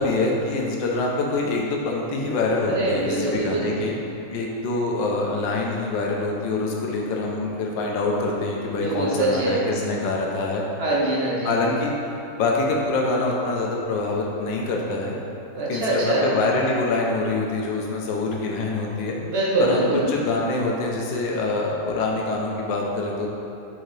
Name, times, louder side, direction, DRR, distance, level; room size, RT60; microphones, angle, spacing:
voice 1, 0.0-3.9 4.3-10.6 11.4-11.9 12.4-15.2 15.7-19.2 19.6-19.8 20.1-23.3, left 3 dB, 80° left, -1 dB, 1.5 m, -25 dB
voice 2, 2.7-3.7 8.8-9.6 10.8-11.6 15.5-16.3 19.2-20.1, right 2 dB, 45° right, -5 dB, 0.9 m, -23 dB
6.4 x 4.7 x 3.3 m, 2.9 s
omnidirectional pair, 2.0 m